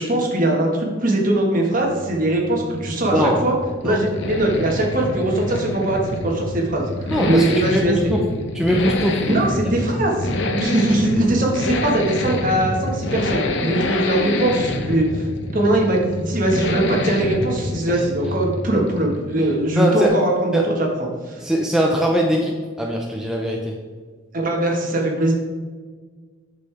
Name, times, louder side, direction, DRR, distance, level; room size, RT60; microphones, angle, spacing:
voice 1, 0.0-3.5 3.8-8.1 9.2-15.3 15.5-20.9 21.3-21.4 24.3-25.3, right 1 dB, 40° right, -1 dB, 1.5 m, -21 dB
sound 1, 1.6-19.6, left 2 dB, 60° left, 0.8 m, -27 dB
voice 2, 3.1-3.4 3.8-4.0 7.1-8.3 8.5-9.4 9.6-9.8 17.9-18.0 19.8-20.1 20.5-20.6 21.4-23.8, equal, 5° right, -1 dB, 0.6 m, -21 dB
8.1 x 6.6 x 3.4 m, 1.5 s
head